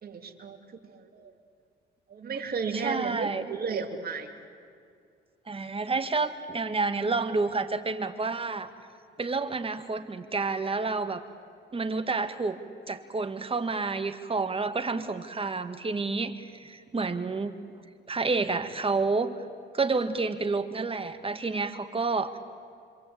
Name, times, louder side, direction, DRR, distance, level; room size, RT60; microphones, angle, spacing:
voice 1, 0.0-0.6 0.8-1.3 2.1-4.3, right 5 dB, 50° right, 3 dB, 3.0 m, -34 dB
voice 2, 2.7-3.5 5.5-8.7 9.2-11.2 11.7-12.6 12.9-17.5 18.1-19.4 19.7-22.4, right 3 dB, 30° right, 8 dB, 1.8 m, -29 dB
26.0 x 26.0 x 8.7 m, 2.3 s
cardioid pair, 90°, 20 cm